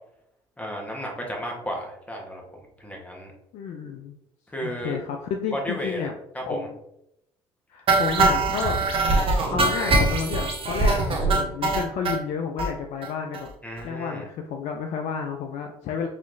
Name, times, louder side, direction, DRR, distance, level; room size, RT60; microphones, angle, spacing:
voice 1, 0.6-2.4 2.8-3.3 4.5-5.0 5.5-6.1 6.3-6.7 13.6-14.3, equal, 10° left, 0 dB, 1.2 m, -33 dB
voice 2, 3.5-4.2 4.6-6.1 6.5-6.8 7.7-8.8 9.5-13.5 13.8-16.1, left 6 dB, 60° left, 4 dB, 0.4 m, -31 dB
sound 1, 7.9-12.2 12.6-12.7 13.0-13.1 13.3-13.5 13.8-13.9, right 3 dB, 45° right, 0.8 m, -22 dB
4.0 x 2.9 x 2.6 m, 0.79 s
hypercardioid pair, 60°, 13 cm